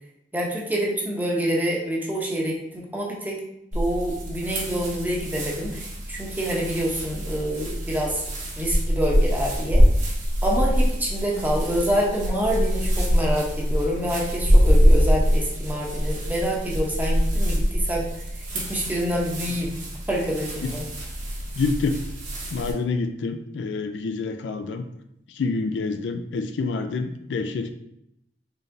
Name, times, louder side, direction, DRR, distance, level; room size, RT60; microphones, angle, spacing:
voice 1, 0.3-3.4 3.7-8.2 8.6-9.8 10.4-18.2 18.5-19.7 20.1-20.9, equal, 10° right, -2 dB, 0.8 m, -27 dB
sound 1, 3.7-22.7, equal, 45° right, 1.2 m, -24 dB
voice 2, 21.6-22.0 22.5-24.9 25.4-27.7, left 4 dB, 75° left, 7 dB, 0.4 m, -27 dB
4.4 x 3.3 x 2.6 m, 0.79 s
head